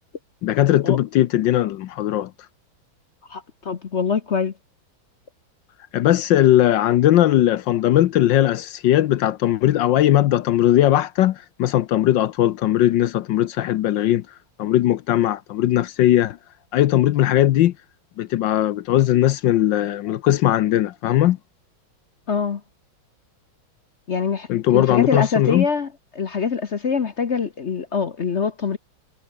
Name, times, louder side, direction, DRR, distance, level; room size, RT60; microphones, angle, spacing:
voice 1, 0.4-2.3 5.9-14.2 14.6-16.4 16.7-17.7 18.2-21.4 24.5-25.7, left 13 dB, 70° left, 1.3 m, -19 dB
voice 2, 3.3-4.5 22.3-22.6 24.1-28.8, left 5 dB, 45° left, 1.0 m, -24 dB
omnidirectional pair, 2.3 m